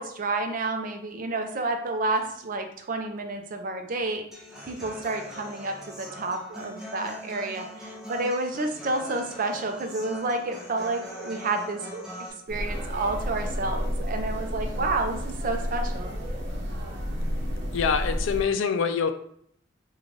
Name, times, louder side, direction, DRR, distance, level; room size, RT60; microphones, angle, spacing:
voice 1, 0.0-4.3 4.7-12.1 12.5-16.2, right 2 dB, 45° right, 5 dB, 0.5 m, -30 dB
Human voice / Acoustic guitar, 4.3-12.3, equal, 5° right, 0.6 m, -42 dB
sound 1, 12.5-18.4, equal, 65° right, 0.8 m, -31 dB
voice 2, 17.7-19.1, left 6 dB, 80° left, 10 dB, 0.4 m, -25 dB
3.1 x 2.3 x 3.8 m, 0.68 s
head